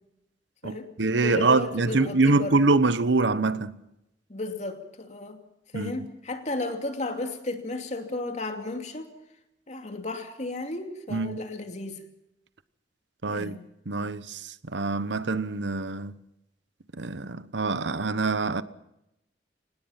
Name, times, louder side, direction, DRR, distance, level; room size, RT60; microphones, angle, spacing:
voice 1, 0.6-3.7 5.7-6.1 11.1-11.4 13.2-13.6 13.9-16.2 16.9-18.6, right 3 dB, 85° right, 1.0 m, -25 dB
voice 2, 1.2-2.6 4.3-5.4 5.7-9.1 9.7-12.0 13.2-13.6, left 2 dB, 40° left, 2.8 m, -34 dB
26.0 x 19.5 x 5.8 m
head